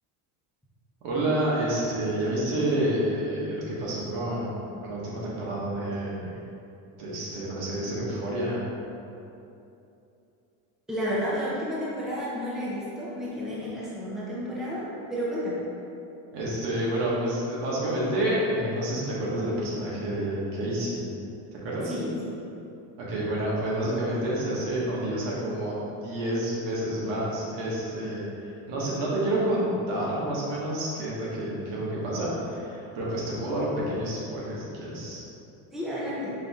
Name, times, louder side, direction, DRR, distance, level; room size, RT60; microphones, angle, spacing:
voice 1, 1.0-6.3 7.0-8.6 16.3-21.1 21.6-21.9 23.0-25.7 26.0-28.2 28.7-35.2, right 1 dB, 80° right, -6 dB, 1.4 m, -29 dB
voice 2, 10.9-15.6 21.8-22.3 35.7-36.3, equal, ahead, -8 dB, 0.6 m, -31 dB
5.2 x 2.7 x 3.6 m, 2.8 s
cardioid pair, 150°, 44 cm